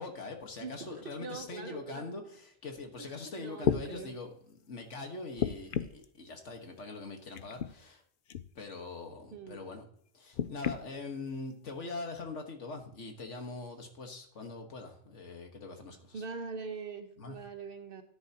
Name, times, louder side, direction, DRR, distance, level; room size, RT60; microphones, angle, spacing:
voice 1, 0.0-8.0 8.6-9.9 10.1-16.2 17.2-17.4, left 3 dB, 85° left, 4 dB, 1.8 m, -43 dB
voice 2, 0.6-2.2 3.0-4.1 9.3-9.7 16.1-18.0, right 4 dB, 55° right, 7 dB, 1.2 m, -43 dB
sound 1, 3.1-3.2 3.6-3.9 5.4-6.1 7.3-7.7 8.3-8.5 10.3-10.8 11.7-11.8, left 8 dB, 60° left, 0.6 m, -32 dB
13.5 x 10.5 x 2.9 m, 0.63 s
omnidirectional pair, 1.2 m